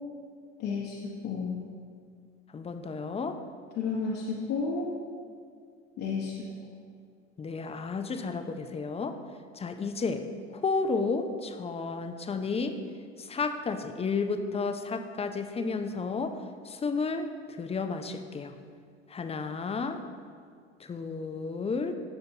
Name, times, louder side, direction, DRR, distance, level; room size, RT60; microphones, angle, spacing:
voice 1, 0.6-1.6 3.8-4.9 6.0-6.7, left 4 dB, 50° left, -4 dB, 1.3 m, -32 dB
voice 2, 2.5-3.4 7.4-9.2 9.5-10.2 10.5-12.8 13.2-18.5 19.1-20.0 20.8-22.0, left 4 dB, 20° left, 7 dB, 0.7 m, -32 dB
16.5 x 6.6 x 2.9 m, 2.1 s
figure-of-eight pair, 65°, 34 cm